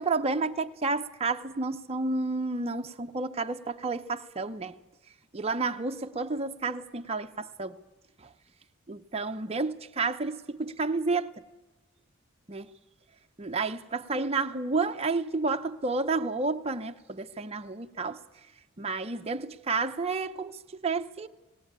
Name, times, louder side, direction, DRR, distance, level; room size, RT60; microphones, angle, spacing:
voice 1, 0.0-4.7 5.3-7.8 8.2-8.3 8.9-11.4 12.5-12.7 13.4-18.2 18.8-21.3, right 3 dB, 30° right, 0.7 m, -31 dB
18.5 x 18.0 x 8.8 m
head